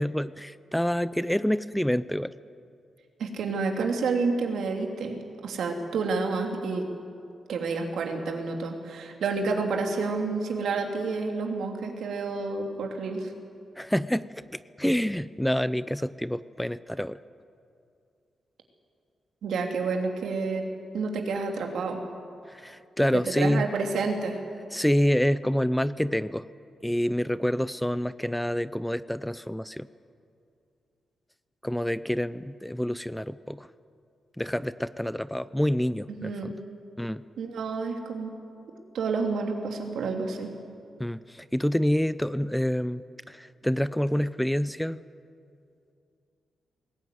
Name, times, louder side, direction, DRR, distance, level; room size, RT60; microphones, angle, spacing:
voice 1, 0.0-2.3 13.8-17.2 22.5-23.7 24.7-26.5 26.8-29.9 31.6-33.7 34.4-36.5 37.0-37.2 41.0-45.0, equal, 5° left, 15 dB, 0.4 m, -27 dB
voice 2, 3.2-5.2 5.4-6.9 7.5-13.3 19.4-20.7 20.9-22.0 23.4-24.4 36.1-36.5 37.4-38.3 38.7-40.5, right 4 dB, 80° right, 2 dB, 3.0 m, -29 dB
21.0 x 18.5 x 9.4 m, 2.5 s
wide cardioid pair, 135°, 0 cm